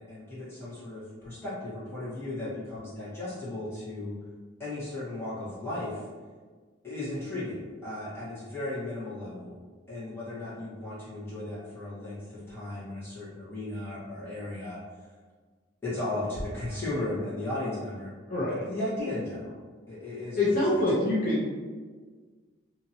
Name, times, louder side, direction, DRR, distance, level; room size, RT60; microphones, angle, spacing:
voice 1, 0.0-4.2 4.6-6.1 6.8-9.5 9.9-14.8 15.8-18.1 18.5-19.6 19.9-20.4, left 2 dB, 15° left, -11 dB, 1.2 m, -35 dB
voice 2, 18.3-18.7 20.3-21.5, left 1 dB, 45° left, -7 dB, 0.6 m, -25 dB
2.9 x 2.6 x 2.7 m, 1.5 s
head